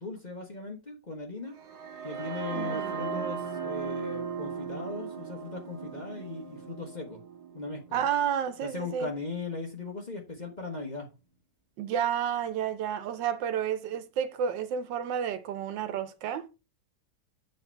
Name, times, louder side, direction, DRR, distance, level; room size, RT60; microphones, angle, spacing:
voice 1, 0.0-1.5 2.0-7.2 7.5-8.0 8.6-11.1, left 3 dB, 30° left, 1.0 m, -38 dB
sound 1, 1.6-9.5, right 6 dB, 65° right, 1.8 m, -38 dB
voice 2, 2.5-3.0 7.9-9.1 11.8-16.5, right 8 dB, 90° right, 1.5 m, -31 dB
7.9 x 3.3 x 4.4 m
omnidirectional pair, 1.9 m